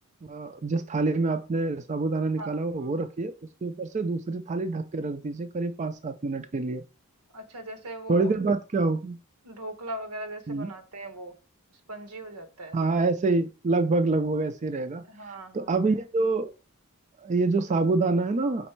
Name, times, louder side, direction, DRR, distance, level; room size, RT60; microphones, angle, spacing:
voice 1, 0.2-6.8 8.1-9.2 10.5-10.7 12.7-16.5 17.2-18.7, right 3 dB, 30° right, 0.4 m, -27 dB
voice 2, 2.4-2.9 7.3-8.3 9.4-11.4 11.9-12.8 15.1-15.8, right 1 dB, 85° right, 1.1 m, -39 dB
5.2 x 4.0 x 4.4 m
head